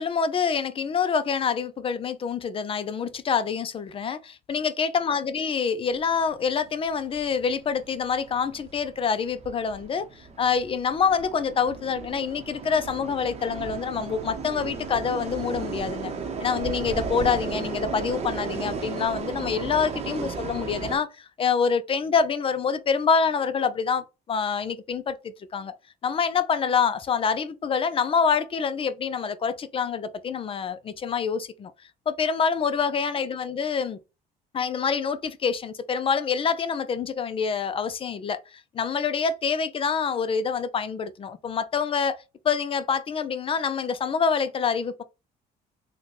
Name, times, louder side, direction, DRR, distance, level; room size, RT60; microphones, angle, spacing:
voice 1, 0.0-16.1 16.4-25.7 26.0-31.7 32.1-34.0 34.5-42.2 42.4-45.0, left 6 dB, 35° left, 0.4 m, -26 dB
sound 1, 5.8-21.0, right 4 dB, 40° right, 0.8 m, -35 dB
3.8 x 2.2 x 3.1 m
cardioid pair, 110°, 17 cm